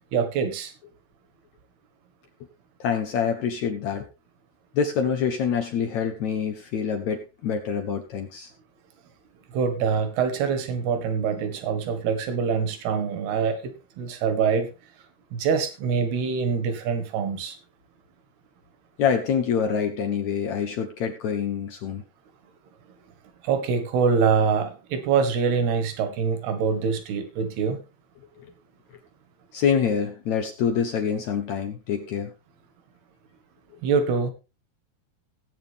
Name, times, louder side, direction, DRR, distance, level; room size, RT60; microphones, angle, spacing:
voice 1, 0.1-0.7 9.5-14.7 15.3-17.6 23.4-27.8 33.8-34.3, right 6 dB, 75° right, 8 dB, 3.7 m, -24 dB
voice 2, 2.8-4.1 4.7-8.5 19.0-22.0 28.4-28.5 29.5-32.3, left 7 dB, 75° left, 7 dB, 1.7 m, -26 dB
17.0 x 9.0 x 3.5 m, 0.30 s
omnidirectional pair, 4.8 m